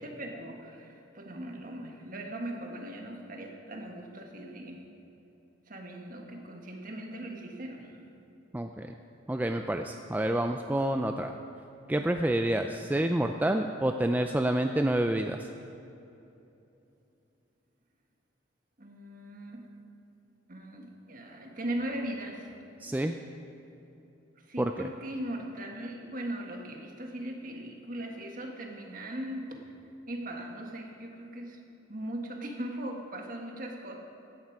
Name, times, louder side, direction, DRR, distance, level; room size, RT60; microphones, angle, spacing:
voice 1, 0.0-4.8 5.7-8.1 18.8-19.6 20.5-22.6 24.4-29.6 30.1-31.6 31.9-34.0, right 1 dB, 45° right, 2 dB, 1.6 m, -39 dB
voice 2, 8.5-8.9 9.3-11.3 11.9-15.5 22.8-23.2 24.6-24.7, right 1 dB, 10° right, 5 dB, 0.3 m, -28 dB
16.0 x 11.0 x 4.7 m, 2.9 s
head